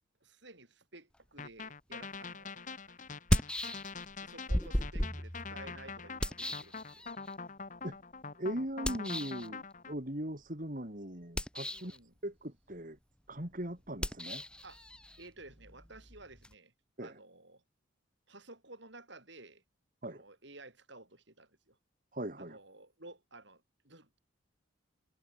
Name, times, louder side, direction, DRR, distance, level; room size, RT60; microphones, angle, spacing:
voice 1, 0.2-3.0 4.2-7.1 11.7-12.1 14.6-14.8 15.2-16.7 17.0-17.6 18.3-19.6 20.0-21.8 22.4-24.2, right 2 dB, 60° right, 7.9 m, -54 dB
sound 1, 1.4-9.9, left 4 dB, 40° left, 1.4 m, -44 dB
sound 2, 2.1-2.2 3.1-4.2 4.5-7.3 8.8-9.5 11.2-12.0 14.0-16.5, equal, 5° left, 0.9 m, -35 dB
voice 2, 8.4-11.9 12.2-13.0 13.3-14.4 17.0-17.2 20.0-20.2 22.1-22.6, right 1 dB, 40° right, 3.7 m, -39 dB
head